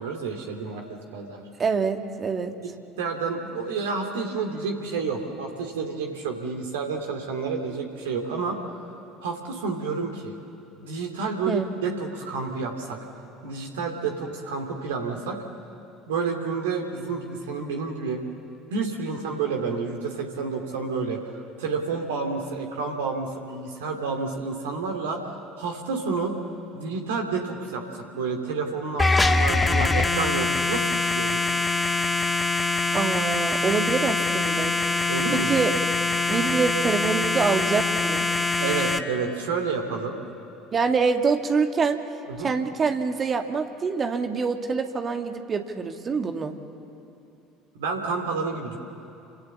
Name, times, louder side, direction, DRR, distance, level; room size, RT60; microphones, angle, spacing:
voice 1, 0.0-1.4 3.0-8.6 9.2-10.4 10.8-13.1 13.4-15.4 16.1-18.2 18.7-26.3 26.7-31.5 35.1-35.6 36.3-36.5 38.6-40.2 42.3-42.5 47.7-48.8, right 4 dB, 65° right, 3 dB, 2.6 m, -30 dB
voice 2, 1.6-2.5 11.5-11.7 32.9-34.7 35.5-35.7 36.3-38.3 40.7-42.0 42.4-46.6, right 5 dB, 30° right, 5 dB, 2.2 m, -25 dB
sound 1, 29.0-39.0, left 3 dB, 15° left, 1.5 m, -24 dB
28.5 x 26.5 x 7.3 m, 2.8 s
figure-of-eight pair, 60°, 0 cm